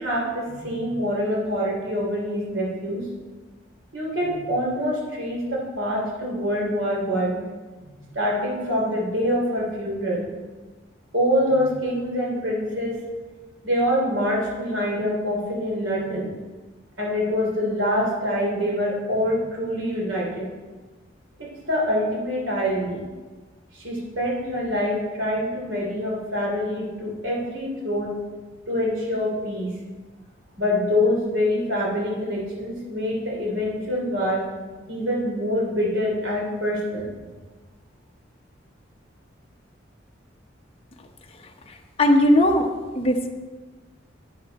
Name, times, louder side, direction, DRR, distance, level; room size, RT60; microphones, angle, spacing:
voice 1, 0.0-3.0 3.9-7.4 7.9-10.2 11.1-12.9 13.6-16.3 17.0-20.5 21.4-23.0 23.7-28.1 28.7-29.7 30.6-34.4 34.9-37.0, equal, 80° right, -3 dB, 3.1 m, -25 dB
voice 2, 42.0-42.7 43.0-43.3, left 1 dB, 30° left, 3 dB, 0.9 m, -17 dB
10.0 x 8.5 x 4.1 m, 1.3 s
head